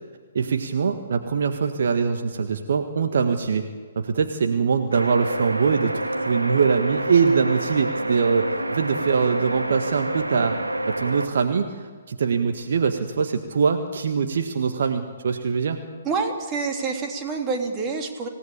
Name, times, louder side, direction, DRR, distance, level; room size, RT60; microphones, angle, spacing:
voice 1, 0.3-3.6 4.0-10.6 11.0-15.8, right 5 dB, 55° right, 6 dB, 1.6 m, -23 dB
sound 1, 4.9-11.3, right 1 dB, 85° right, 2.2 m, -28 dB
voice 2, 16.0-18.3, right 4 dB, 20° right, 3 dB, 3.1 m, -27 dB
26.0 x 17.5 x 8.7 m, 1.5 s
figure-of-eight pair, 125°, 0 cm